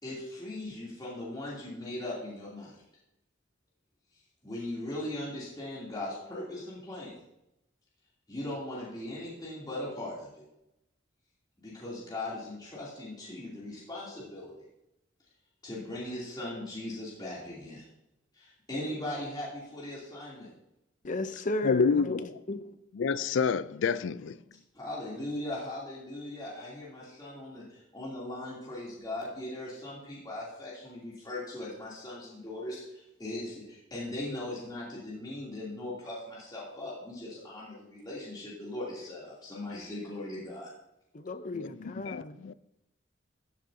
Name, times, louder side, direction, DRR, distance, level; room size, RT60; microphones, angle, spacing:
voice 1, 0.0-2.8 4.4-7.2 8.3-10.4 11.6-14.6 15.6-17.9 18.3-20.5 24.7-40.7, left 1 dB, 20° left, 2.9 m, -39 dB
voice 2, 21.0-22.8 41.1-42.3, left 2 dB, 45° left, 0.7 m, -35 dB
voice 3, 21.6-22.3 23.0-24.4 41.5-42.2, left 5 dB, 80° left, 0.4 m, -28 dB
14.0 x 7.7 x 2.7 m
head